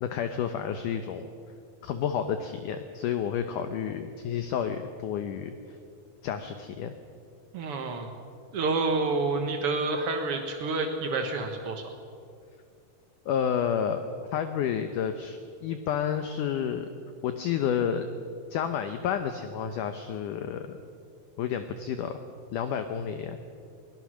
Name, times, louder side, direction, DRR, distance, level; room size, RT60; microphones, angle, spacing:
voice 1, 0.0-1.2 1.8-5.5 6.2-6.9 13.3-14.0 14.3-16.9 17.2-18.1 18.5-20.8 21.4-22.2 22.5-23.4, left 8 dB, 75° left, 8 dB, 2.0 m, -30 dB
voice 2, 7.5-8.1 8.5-11.8, right 3 dB, 70° right, 3 dB, 1.4 m, -28 dB
22.5 x 19.5 x 6.3 m, 2.3 s
omnidirectional pair, 4.6 m